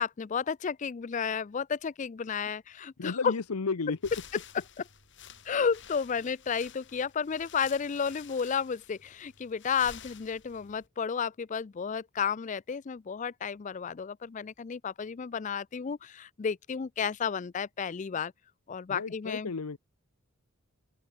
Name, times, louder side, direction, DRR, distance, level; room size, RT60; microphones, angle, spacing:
voice 1, 0.0-3.3 4.5-4.6 5.5-18.3 18.7-19.5, left 6 dB, 35° left, 0.3 m, -32 dB
voice 2, 3.0-4.0 18.9-19.8, left 4 dB, 85° left, 0.8 m, -33 dB
sound 1, 4.0-10.9, left 8 dB, 55° left, 7.0 m, -51 dB
open air
head